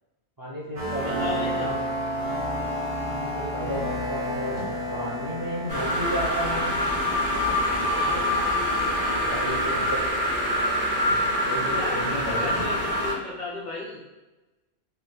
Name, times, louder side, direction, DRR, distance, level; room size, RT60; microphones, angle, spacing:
voice 1, 0.4-1.7 3.0-4.6 4.9-6.7 9.2-10.0 11.4-12.6, equal, 30° right, -7 dB, 0.4 m, -32 dB
sound 1, 0.8-9.4, equal, 55° right, 1.0 m, -32 dB
voice 2, 1.0-1.7 7.9-8.3 11.7-14.0, left 2 dB, 55° left, -3 dB, 0.6 m, -35 dB
Thump thud, 4.6-4.8 5.8-6.0 7.3-7.7 8.1-8.2 9.7-10.0 10.7-10.8 11.0-11.3 12.5-12.8, equal, 85° right, 1.5 m, -41 dB
sound 2, 5.7-13.1, equal, 10° left, 1.0 m, -25 dB
3.1 x 2.8 x 2.2 m, 1.1 s
omnidirectional pair, 1.1 m